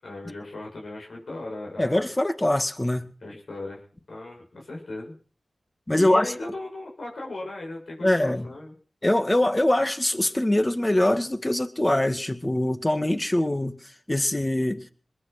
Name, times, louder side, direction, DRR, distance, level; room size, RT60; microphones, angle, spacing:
voice 1, 0.0-2.0 3.2-3.8 4.1-5.2 6.0-8.7, left 2 dB, 70° left, 0 dB, 7.2 m, -37 dB
voice 2, 1.8-3.1 5.9-6.3 8.0-8.5 9.0-14.9, left 1 dB, 20° left, 10 dB, 2.0 m, -23 dB
21.5 x 10.0 x 6.1 m, 0.42 s
cardioid pair, 40°, 0 cm